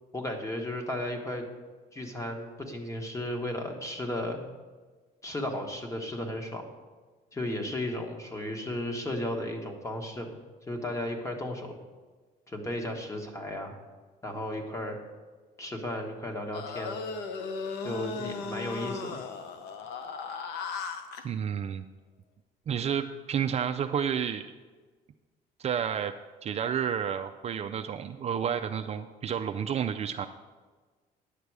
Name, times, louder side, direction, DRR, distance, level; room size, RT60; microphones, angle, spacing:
voice 1, 0.1-1.4 1.9-4.5 5.2-6.6 7.3-10.3 10.7-11.8 12.5-13.8 14.2-15.0 15.6-17.0 17.8-19.2, left 1 dB, 20° left, 3 dB, 1.4 m, -34 dB
sound 1, 16.5-21.2, left 5 dB, 85° left, 0.9 m, -36 dB
voice 2, 21.2-21.8 22.7-24.5 25.6-30.3, right 8 dB, 40° right, 6 dB, 0.4 m, -30 dB
10.0 x 6.8 x 4.8 m, 1.4 s
cardioid pair, 110°, 17 cm